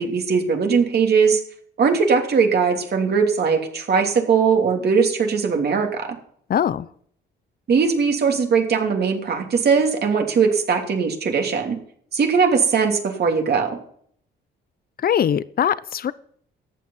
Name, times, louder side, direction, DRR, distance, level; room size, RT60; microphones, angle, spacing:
voice 1, 0.0-1.4 1.8-6.1 7.7-11.8 12.1-13.7, right 5 dB, 55° right, 3 dB, 3.0 m, -20 dB
voice 2, 6.5-6.9 15.0-16.1, left 9 dB, 50° left, 17 dB, 0.7 m, -21 dB
14.5 x 9.2 x 5.6 m, 0.62 s
cardioid pair, 90°, 20 cm